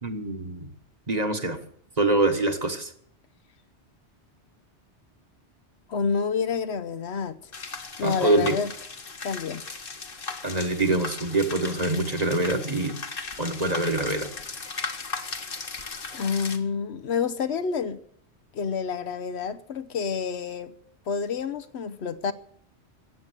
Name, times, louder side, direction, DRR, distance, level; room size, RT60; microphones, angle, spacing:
voice 1, 0.0-0.7 1.1-1.6 2.0-2.9 8.0-8.6 10.4-13.0 13.4-14.3, right 2 dB, 35° right, 1.5 m, -25 dB
voice 2, 5.9-7.4 8.0-8.7 9.2-9.6 16.1-18.0 18.5-20.7 21.1-22.3, left 6 dB, 70° left, 1.0 m, -28 dB
sound 1, 7.5-16.6, left 4 dB, 50° left, 1.4 m, -37 dB
15.0 x 8.6 x 8.1 m
omnidirectional pair, 1.2 m